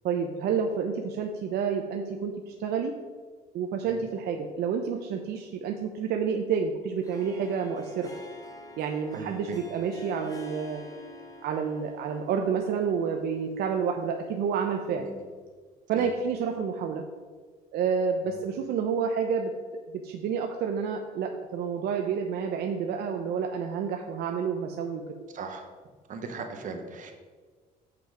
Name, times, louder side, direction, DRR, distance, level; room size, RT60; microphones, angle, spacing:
voice 1, 0.0-2.9 3.5-8.1 8.8-10.9 11.4-15.1 15.9-17.0 17.7-19.5 20.0-25.0, right 6 dB, 70° right, 3 dB, 0.7 m, -29 dB
Harp, 7.0-15.2, left 1 dB, 20° left, 1.0 m, -47 dB
voice 2, 9.1-9.6 15.0-15.2 15.9-16.1 18.2-18.4 25.3-25.7 26.1-27.1, right 4 dB, 50° right, 4 dB, 1.3 m, -38 dB
7.6 x 5.9 x 5.0 m, 1.5 s
cardioid pair, 110°, 17 cm